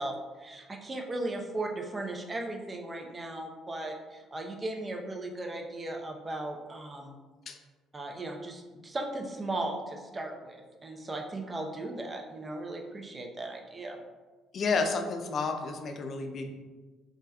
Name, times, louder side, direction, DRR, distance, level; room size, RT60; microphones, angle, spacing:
voice 1, 0.0-7.2 7.9-14.0, right 2 dB, 25° right, 2 dB, 0.6 m, -37 dB
voice 2, 14.5-16.5, left 4 dB, 50° left, 5 dB, 0.4 m, -31 dB
4.0 x 3.3 x 2.2 m, 1.3 s
hypercardioid pair, 50°, 0 cm